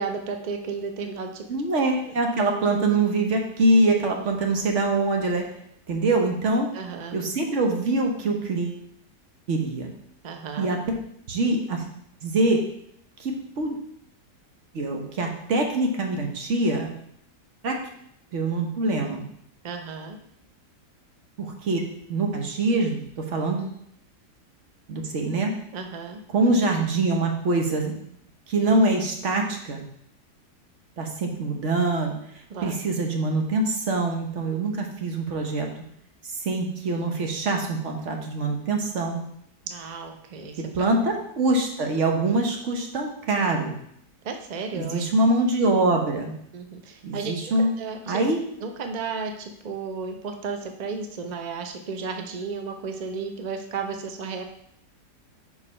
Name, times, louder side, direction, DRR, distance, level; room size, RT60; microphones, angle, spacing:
voice 1, 0.0-1.5 6.7-7.2 10.2-10.7 19.6-20.2 25.7-26.2 32.5-32.8 39.7-40.9 44.2-45.0 46.5-48.2 48.6-54.4, right 5 dB, 80° right, 5 dB, 0.3 m, -33 dB
voice 2, 1.5-5.5 5.9-6.7 7.1-8.8 9.5-9.9 10.6-10.8 11.3-11.8 12.2-12.6 13.2-13.8 14.7-17.0 17.6-17.8 18.3-19.2 21.4-21.8 22.1-23.7 24.9-25.5 26.3-27.9 28.5-29.8 31.0-32.2 32.6-35.7 36.4-39.2 40.7-43.7 44.7-46.3 47.0-47.7 48.1-48.4, right 2 dB, 50° right, 2 dB, 1.3 m, -24 dB
4.8 x 4.7 x 5.4 m, 0.71 s
omnidirectional pair, 1.8 m